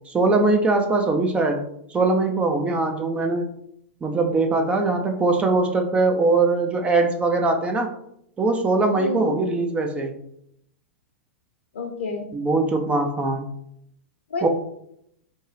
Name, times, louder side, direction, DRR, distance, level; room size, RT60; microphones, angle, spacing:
voice 1, 0.1-1.6 1.9-3.5 4.0-8.0 8.4-10.1 12.3-13.4 14.4-14.5, right 3 dB, 20° right, 3 dB, 0.7 m, -21 dB
voice 2, 8.9-9.4 11.7-12.3 14.3-14.5, left 1 dB, 70° left, 4 dB, 1.0 m, -29 dB
4.4 x 3.5 x 3.3 m, 0.74 s
figure-of-eight pair, 100°, 7 cm